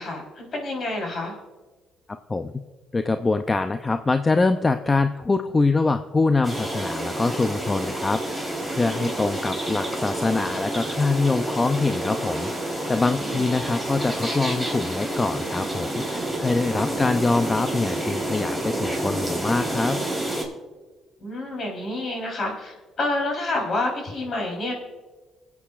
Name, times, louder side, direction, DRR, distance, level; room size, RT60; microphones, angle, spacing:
voice 1, 0.0-1.3 8.8-9.1 13.2-13.5 21.2-24.7, left 2 dB, 50° left, 0 dB, 3.7 m, -29 dB
voice 2, 2.9-20.0, left 3 dB, 25° left, 9 dB, 0.5 m, -24 dB
sound 1, 6.4-20.4, right 1 dB, 10° left, 3.7 m, -29 dB
25.0 x 8.4 x 2.4 m, 1.3 s
cardioid pair, 80°, 0 cm